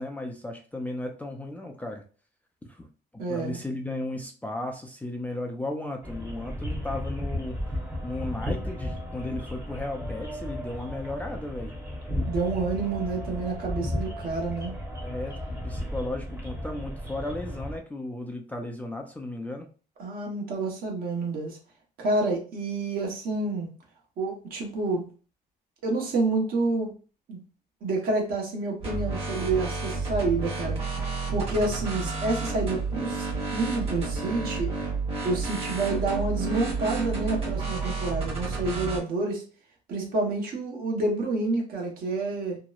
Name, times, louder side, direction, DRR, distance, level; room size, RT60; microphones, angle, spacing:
voice 1, 0.0-2.0 2.7-2.9 3.3-11.7 15.0-19.7, left 2 dB, 10° left, 2 dB, 0.3 m, -35 dB
voice 2, 3.2-3.6 12.3-14.7 20.0-21.6 22.0-23.7 24.2-25.0 25.8-26.9 27.3-27.4 27.8-30.8 31.3-34.7 35.2-39.4 39.9-42.6, right 3 dB, 60° right, 0 dB, 1.0 m, -28 dB
sound 1, 6.0-17.8, equal, 15° right, 0.8 m, -34 dB
sound 2, 28.8-39.0, right 4 dB, 35° right, 1.1 m, -31 dB
2.9 x 2.0 x 2.3 m, 0.37 s
cardioid pair, 110°, 17 cm